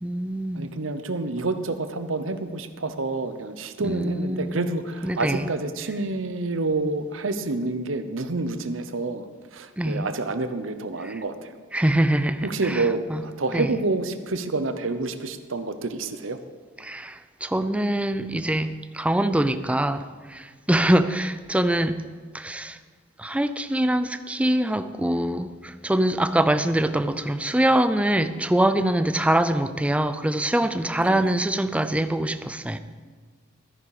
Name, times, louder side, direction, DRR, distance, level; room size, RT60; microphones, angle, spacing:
voice 1, 0.0-0.7 3.8-4.6 5.0-5.5 9.8-10.1 11.0-11.1 11.7-13.2 13.5-13.7 16.8-22.0 22.3-22.8 23.2-32.8, right 1 dB, 5° right, 11 dB, 0.5 m, -24 dB
voice 2, 0.5-11.6 12.4-16.4 31.0-31.3, right 3 dB, 90° right, 10 dB, 0.9 m, -28 dB
13.5 x 10.0 x 4.9 m, 1.5 s
head